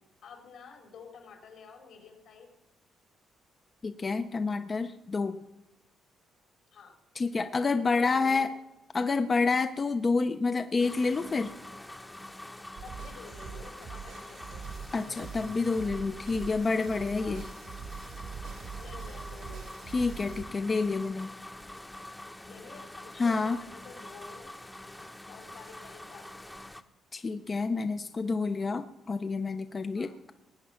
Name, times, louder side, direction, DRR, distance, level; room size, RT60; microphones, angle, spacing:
voice 1, 0.2-2.5 6.7-6.9 7.7-7.9 8.1-8.5 12.8-14.7 17.2-17.4 18.8-19.8 22.5-24.5 25.3-26.5 29.9-30.1, left 5 dB, 70° left, 2 dB, 4.0 m, -50 dB
voice 2, 3.8-5.4 7.1-8.5 8.9-11.5 14.9-17.5 19.9-21.3 23.2-23.6 27.1-30.3, left 4 dB, 35° left, 8 dB, 0.8 m, -28 dB
sound 1, 10.8-26.8, left 1 dB, 10° left, 1.0 m, -46 dB
sound 2, 12.8-20.5, right 6 dB, 75° right, 2.0 m, -43 dB
19.5 x 9.3 x 5.8 m, 0.94 s
cardioid pair, 90°, 0 cm